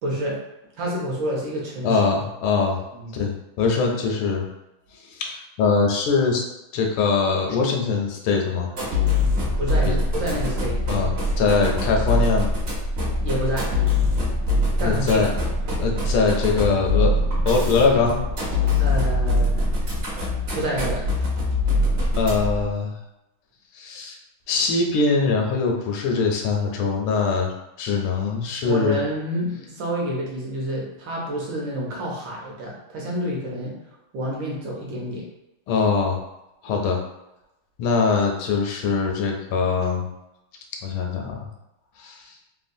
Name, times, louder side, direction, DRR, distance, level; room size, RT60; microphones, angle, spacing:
voice 1, 0.0-0.4 0.8-2.0 2.9-3.2 9.6-10.8 13.2-13.7 14.8-15.3 18.8-19.5 20.5-21.1 28.6-33.8 34.1-35.3, equal, 70° right, -3 dB, 1.3 m, -28 dB
voice 2, 1.8-2.8 3.1-4.5 5.1-6.4 6.7-8.7 9.9-10.0 10.9-12.5 14.8-15.3 15.8-17.1 17.5-18.2 22.2-23.0 23.7-24.2 24.5-27.5 27.8-29.0 35.7-36.2 36.6-37.0 37.8-40.1 40.8-41.5 42.0-42.2, left 4 dB, 80° left, 1 dB, 1.3 m, -22 dB
sound 1, 8.7-22.7, left 2 dB, 50° right, 0.8 m, -23 dB
3.5 x 2.2 x 2.5 m, 0.93 s
omnidirectional pair, 2.4 m